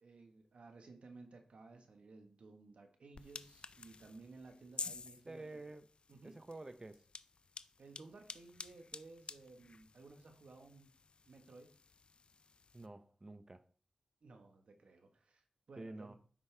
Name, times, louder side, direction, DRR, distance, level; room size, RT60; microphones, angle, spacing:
voice 1, 0.0-5.6 6.1-6.4 7.8-10.9 11.3-11.7 14.2-16.2, right 3 dB, 75° right, 1.3 m, -57 dB
sound 1, 3.1-12.9, left 4 dB, 60° left, 0.4 m, -51 dB
voice 2, 5.3-5.8 6.2-7.0 12.7-13.6 15.8-16.1, right 2 dB, 30° right, 0.7 m, -49 dB
7.4 x 5.5 x 3.4 m
wide cardioid pair, 70°, 2 cm